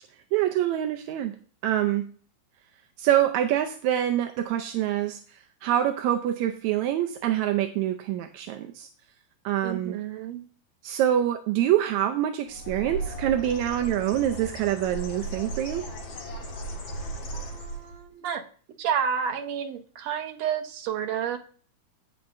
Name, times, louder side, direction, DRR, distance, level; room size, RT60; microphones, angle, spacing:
voice 1, 0.3-1.3 1.6-2.1 3.0-5.2 5.6-8.9 9.4-10.0 10.8-15.8, right 11 dB, 80° right, 6 dB, 1.7 m, -25 dB
voice 2, 9.6-10.5 17.3-18.4 18.8-21.4, right 8 dB, 60° right, 5 dB, 2.0 m, -30 dB
Bird, 12.5-18.0, right 1 dB, 50° left, 2.6 m, -36 dB
16.5 x 6.6 x 2.6 m, 0.43 s
omnidirectional pair, 3.9 m